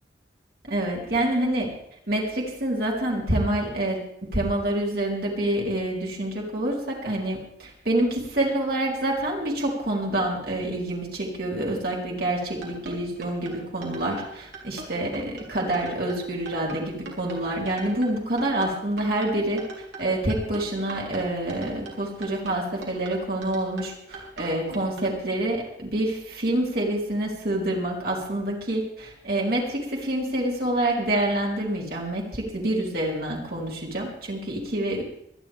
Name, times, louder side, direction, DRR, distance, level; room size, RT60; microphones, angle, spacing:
voice 1, 0.7-1.7 2.1-19.6 20.0-35.0, right 1 dB, 55° right, -2 dB, 3.5 m, -27 dB
sound 1, 12.4-25.1, right 3 dB, 70° right, 3.6 m, -40 dB
24.5 x 10.5 x 3.5 m, 0.73 s
head